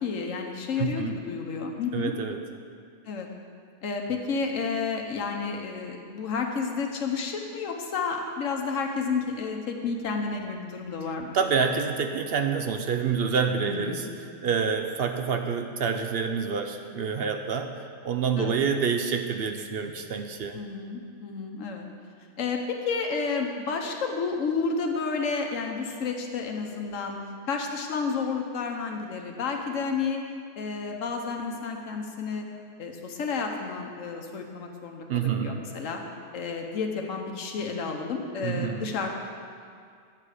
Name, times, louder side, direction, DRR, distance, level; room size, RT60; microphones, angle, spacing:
voice 1, 0.0-2.1 3.1-3.3 3.8-11.4 13.7-14.1 18.4-18.6 20.5-21.9 22.4-27.2 27.5-30.2 30.6-32.4 32.8-36.0 36.3-39.1, left 5 dB, 90° left, 3 dB, 1.2 m, -31 dB
voice 2, 0.8-1.2 1.9-2.4 11.3-14.1 14.4-17.7 18.0-20.6 35.1-35.7 38.4-38.9, right 6 dB, 60° right, 6 dB, 0.7 m, -27 dB
10.5 x 7.7 x 4.9 m, 2.2 s
omnidirectional pair, 1.3 m